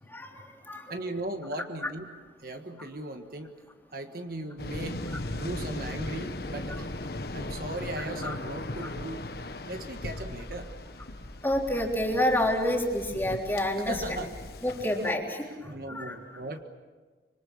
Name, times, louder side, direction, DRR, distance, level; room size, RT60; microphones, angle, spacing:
voice 1, 0.1-0.9 8.0-8.3 8.8-8.9 11.4-13.9 14.6-16.1, left 1 dB, 10° left, 0 dB, 3.3 m, -29 dB
voice 2, 0.9-2.1 2.4-3.5 3.9-6.9 7.3-9.3 9.7-10.7 13.8-14.3 15.1-16.6, right 2 dB, 55° right, 6 dB, 1.6 m, -38 dB
Waves surf, 4.6-15.1, left 1 dB, 60° left, 1.3 m, -38 dB
26.0 x 25.5 x 7.2 m, 1.4 s
head